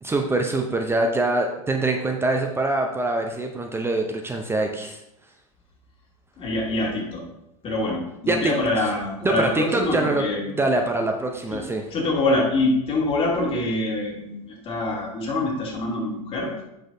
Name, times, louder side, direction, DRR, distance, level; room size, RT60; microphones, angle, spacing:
voice 1, 0.0-5.0 8.3-8.5 9.2-10.3 10.5-11.8, right 2 dB, 15° right, 3 dB, 0.7 m, -24 dB
voice 2, 6.4-7.2 7.6-10.6 11.5-11.6 11.9-16.5, left 2 dB, 30° left, -3 dB, 2.6 m, -25 dB
7.5 x 6.3 x 2.7 m, 0.86 s
hypercardioid pair, 90°, 19 cm